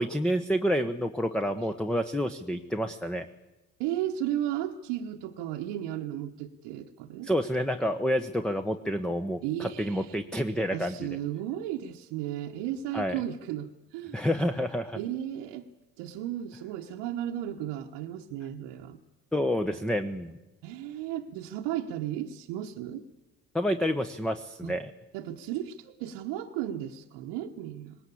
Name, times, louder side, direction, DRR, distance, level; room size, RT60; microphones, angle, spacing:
voice 1, 0.0-3.3 7.2-11.1 12.9-13.2 14.1-15.0 19.3-20.4 23.5-24.9, equal, ahead, 8 dB, 1.0 m, -29 dB
voice 2, 3.8-7.3 9.4-10.2 10.7-14.2 14.9-15.7 16.0-19.0 20.6-23.1 24.6-24.7 25.1-28.0, right 11 dB, 80° right, 2 dB, 1.2 m, -34 dB
19.5 x 18.0 x 8.6 m, 1.1 s
hypercardioid pair, 65°, 43 cm